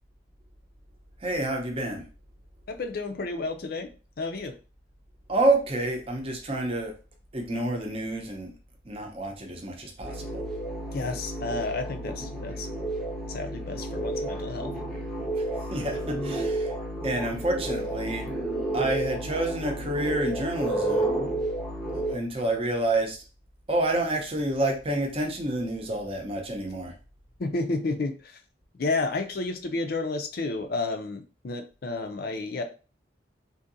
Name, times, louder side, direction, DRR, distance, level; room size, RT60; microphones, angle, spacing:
voice 1, 1.2-2.0 5.3-6.9 7.3-8.5 8.8-10.3 15.4-16.8 17.0-18.3 18.7-21.1 22.1-23.2 23.7-26.9, right 1 dB, 30° right, 2 dB, 0.7 m, -28 dB
voice 2, 2.7-3.9 4.2-4.5 10.9-12.7 13.3-14.7 27.4-28.4 28.7-32.6, left 3 dB, 55° left, 6 dB, 0.5 m, -31 dB
sound 1, 10.0-22.2, right 1 dB, 5° left, 0.7 m, -31 dB
3.8 x 2.7 x 2.6 m, 0.35 s
head